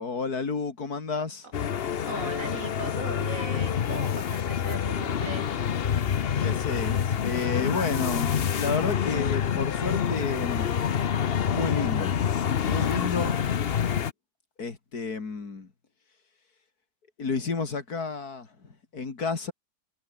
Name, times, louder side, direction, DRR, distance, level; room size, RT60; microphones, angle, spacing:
voice 1, 0.0-1.5 6.4-10.7 11.5-12.2 12.6-13.4 14.6-15.7 17.2-19.5, left 4 dB, 65° left, 3.3 m, -31 dB
sound 1, 1.5-14.1, left 8 dB, 45° left, 0.8 m, -27 dB
voice 2, 2.1-5.5 13.2-13.5, right 3 dB, 50° right, 3.7 m, -39 dB
omnidirectional pair, 1.7 m